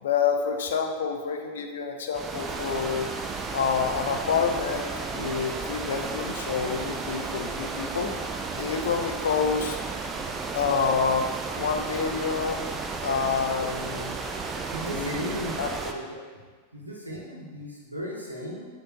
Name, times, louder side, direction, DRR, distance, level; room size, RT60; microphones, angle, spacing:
voice 1, 0.0-3.1 3.5-8.1 8.6-9.8 10.5-12.6 13.0-14.2 14.9-15.7, left 6 dB, 60° left, 4 dB, 0.4 m, -28 dB
sound 1, 2.1-15.9, right 4 dB, 20° right, 0.3 m, -33 dB
voice 2, 14.7-15.5 15.8-16.0 16.7-18.7, equal, 85° right, -3 dB, 0.7 m, -35 dB
5.3 x 2.6 x 2.8 m, 1.5 s
figure-of-eight pair, 90°, 0 cm